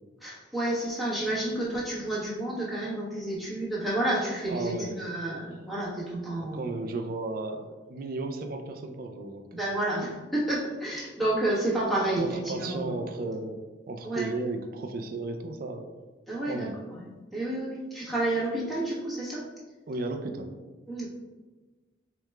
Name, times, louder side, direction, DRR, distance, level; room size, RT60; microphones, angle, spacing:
voice 1, 0.2-6.6 9.5-12.8 14.0-14.3 16.3-17.0 17.3-19.4 20.9-21.1, right 1 dB, ahead, -8 dB, 1.1 m, -30 dB
voice 2, 4.5-5.0 6.4-9.7 12.2-13.6 13.9-15.9 16.5-16.8 19.9-20.5, right 3 dB, 55° right, 5 dB, 0.4 m, -34 dB
4.7 x 3.4 x 2.2 m, 1.2 s
head